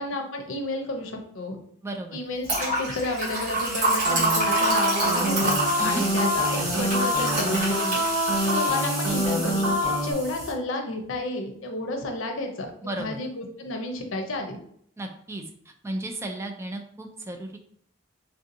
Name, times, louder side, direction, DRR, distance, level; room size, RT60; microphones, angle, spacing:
voice 1, 0.0-1.6 2.1-5.6 5.8-8.0 8.4-12.7 13.0-14.6, left 2 dB, 85° left, 3 dB, 0.6 m, -31 dB
voice 2, 1.8-2.2 5.8-6.1 12.8-13.2 15.0-15.4 15.8-17.6, right 1 dB, 15° right, 4 dB, 0.3 m, -34 dB
sound 1, 2.4-10.5, right 1 dB, 45° right, 1.5 m, -28 dB
sound 2, 4.0-10.1, equal, 85° right, 1.0 m, -25 dB
3.3 x 2.7 x 2.5 m, 0.65 s
head